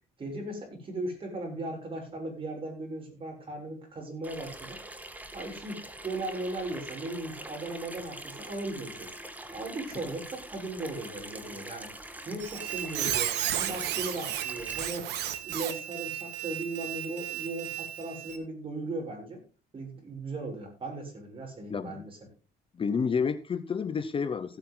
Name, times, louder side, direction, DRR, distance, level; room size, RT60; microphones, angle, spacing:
voice 1, 0.2-4.8 5.3-9.1 9.5-11.9 12.3-15.1 15.4-19.4 19.7-22.2, right 2 dB, 30° right, 1 dB, 7.3 m, -37 dB
Water tap faucet / Sink (filling or washing), 4.2-14.9, right 1 dB, 10° right, 1.8 m, -44 dB
Squeak, 12.4-18.4, right 12 dB, 80° right, 1.9 m, -34 dB
voice 2, 21.7-22.0 22.7-24.6, left 6 dB, 30° left, 12 dB, 0.9 m, -30 dB
15.5 x 9.1 x 3.9 m, 0.33 s
cardioid pair, 110°, 17 cm